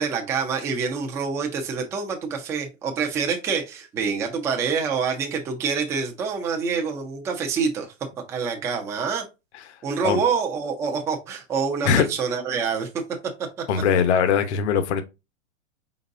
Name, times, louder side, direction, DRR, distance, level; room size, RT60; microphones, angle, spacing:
voice 1, 0.0-7.9 8.3-9.2 9.8-13.2 13.6-13.7, right 5 dB, 10° right, 0.3 m, -26 dB
voice 2, 13.7-15.0, left 7 dB, 60° left, 0.9 m, -20 dB
4.4 x 4.0 x 2.5 m
hypercardioid pair, 130°, 38 cm